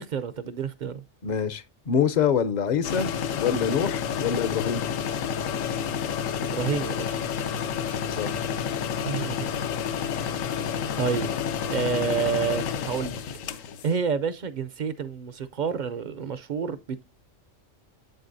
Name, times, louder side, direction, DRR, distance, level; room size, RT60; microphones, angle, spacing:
voice 1, 0.0-1.0 6.4-7.2 9.0-9.5 10.2-10.5 11.0-11.3 11.6-13.2 13.8-17.0, right 6 dB, 55° right, 0.5 m, -29 dB
voice 2, 1.2-4.8 8.2-8.5, left 7 dB, 50° left, 0.6 m, -26 dB
sound 1, 2.8-13.9, left 7 dB, 80° left, 1.1 m, -29 dB
8.0 x 7.8 x 2.6 m
omnidirectional pair, 1.3 m